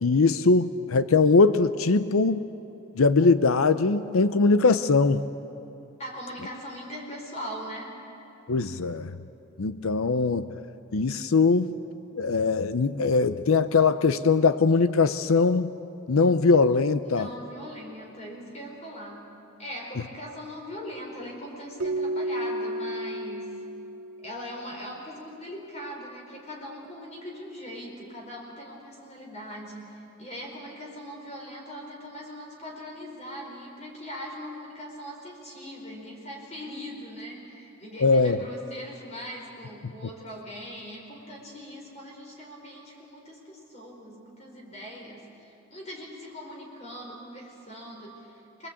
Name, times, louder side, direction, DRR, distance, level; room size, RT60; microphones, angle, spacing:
voice 1, 0.0-2.5 3.0-5.2 8.5-9.2 9.6-10.5 10.9-11.7 12.2-15.7 16.1-17.3 38.0-38.4, left 4 dB, 85° left, 12 dB, 0.7 m, -21 dB
voice 2, 6.0-8.0 17.0-19.3 19.6-23.5 24.2-48.7, equal, 30° left, -1 dB, 4.5 m, -40 dB
Keyboard (musical), 21.8-24.6, right 1 dB, 75° right, 0.6 m, -32 dB
26.0 x 22.5 x 8.5 m, 2.8 s
head